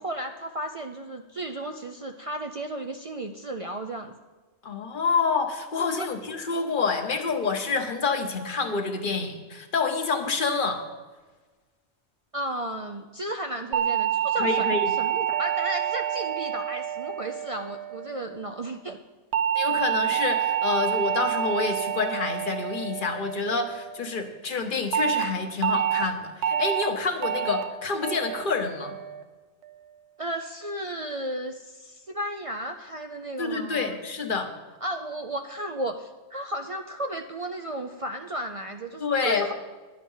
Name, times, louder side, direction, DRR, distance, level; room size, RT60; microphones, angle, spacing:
voice 1, 0.0-4.1 6.0-6.1 12.3-19.0 30.2-34.0 34.8-39.5, right 1 dB, 45° right, 5 dB, 0.5 m, -34 dB
voice 2, 4.6-10.8 14.4-14.9 19.5-28.9 33.4-34.5 39.0-39.5, left 4 dB, 50° left, 6 dB, 1.2 m, -27 dB
sound 1, 13.7-18.2 19.3-23.8 24.9-25.2 25.6-26.0 26.4-26.8 27.2-27.6 28.0-28.4 28.8-29.2, right 10 dB, 75° right, 1.0 m, -27 dB
11.5 x 8.7 x 5.5 m, 1.3 s
omnidirectional pair, 1.1 m